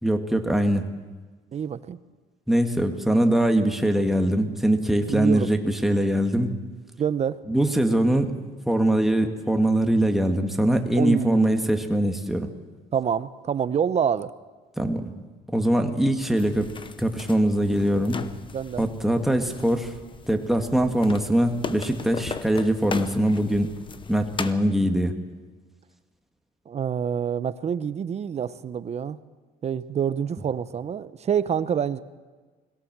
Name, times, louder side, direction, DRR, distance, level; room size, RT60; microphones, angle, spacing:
voice 1, 0.0-0.9 2.5-6.6 7.5-8.3 8.7-12.5 14.8-15.0 15.5-16.7 17.0-18.2 18.8-19.9 20.3-23.7 24.1-25.1, right 1 dB, ahead, 4 dB, 1.8 m, -22 dB
voice 2, 1.5-2.0 5.1-5.5 7.0-7.4 11.0-11.7 12.9-14.3 18.5-18.8 26.7-29.2 29.6-32.0, right 8 dB, 40° right, 14 dB, 0.9 m, -27 dB
sound 1, 16.4-24.5, left 5 dB, 30° left, 1.0 m, -38 dB
21.5 x 17.0 x 7.5 m, 1.3 s
cardioid pair, 110°, 17 cm